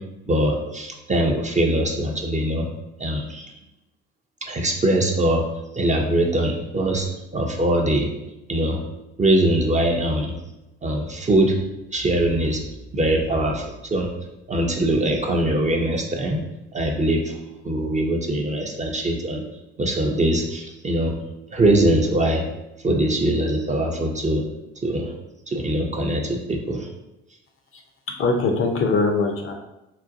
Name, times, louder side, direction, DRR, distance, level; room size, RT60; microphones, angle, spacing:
voice 1, 0.3-2.7 3.0-3.5 4.5-5.5 5.7-8.1 8.5-8.8 9.2-10.3 10.8-11.6 11.9-12.6 12.9-14.1 14.5-16.4 16.7-17.3 17.6-19.4 19.8-21.1 21.5-22.5 22.8-24.4 24.8-25.1 25.5-26.9, right 1 dB, 20° right, 1 dB, 0.5 m, -22 dB
voice 2, 28.1-29.5, left 3 dB, 40° left, 3 dB, 0.6 m, -22 dB
3.9 x 2.2 x 2.6 m, 0.94 s
hypercardioid pair, 55°, 33 cm